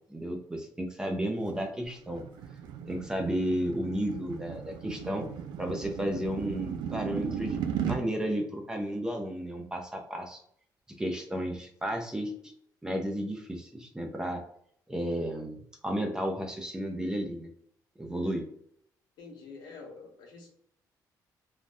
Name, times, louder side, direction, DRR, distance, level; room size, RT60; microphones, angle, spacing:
voice 1, 0.1-2.2 2.9-5.3 5.6-10.4 11.0-12.5 12.8-14.4 14.9-17.5 18.0-18.5, equal, 10° right, 3 dB, 0.4 m, -33 dB
sound 1, 1.5-8.0, right 8 dB, 80° right, 0.4 m, -36 dB
voice 2, 19.2-20.5, left 4 dB, 85° left, 1 dB, 0.9 m, -47 dB
3.3 x 2.3 x 2.5 m, 0.65 s
cardioid pair, 160°, 7 cm